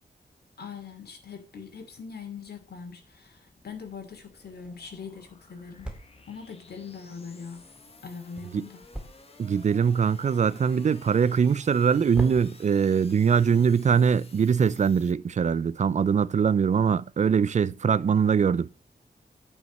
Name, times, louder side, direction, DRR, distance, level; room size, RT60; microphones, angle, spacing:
voice 1, 0.6-5.9 6.3-7.7 8.0-8.8, left 6 dB, 75° left, 2.8 m, -42 dB
sound 1, 1.5-15.1, left 3 dB, 35° left, 1.4 m, -54 dB
sound 2, 4.2-14.8, right 1 dB, 5° right, 2.0 m, -45 dB
voice 2, 9.4-18.7, right 6 dB, 45° right, 0.4 m, -22 dB
9.3 x 5.4 x 6.6 m
wide cardioid pair, 180°, 17 cm